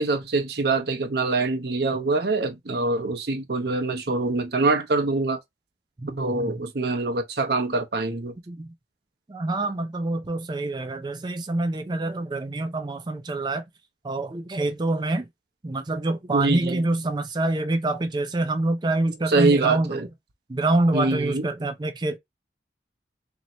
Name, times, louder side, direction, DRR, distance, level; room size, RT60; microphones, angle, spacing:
voice 1, 0.0-5.4 6.2-8.3 16.3-16.8 19.3-20.1 20.9-21.5, right 3 dB, 65° right, 0.8 m, -24 dB
voice 2, 6.0-6.5 8.5-8.7 9.3-13.6 14.0-15.3 15.6-20.1 20.5-22.2, right 2 dB, 25° right, 0.4 m, -26 dB
3.0 x 2.9 x 4.0 m
head